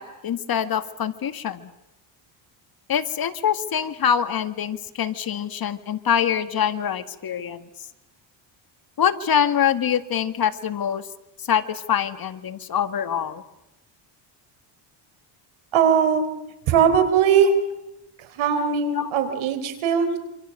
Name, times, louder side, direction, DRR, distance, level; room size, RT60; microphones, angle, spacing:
voice 1, 0.0-1.7 2.9-7.6 9.0-11.0 11.4-13.4 19.0-19.1, left 8 dB, 45° left, 10 dB, 2.0 m, -24 dB
voice 2, 15.7-16.2 16.7-17.5 18.3-20.2, right 7 dB, 70° right, 9 dB, 4.1 m, -19 dB
27.0 x 26.0 x 6.7 m, 0.91 s
cardioid pair, 95°, 48 cm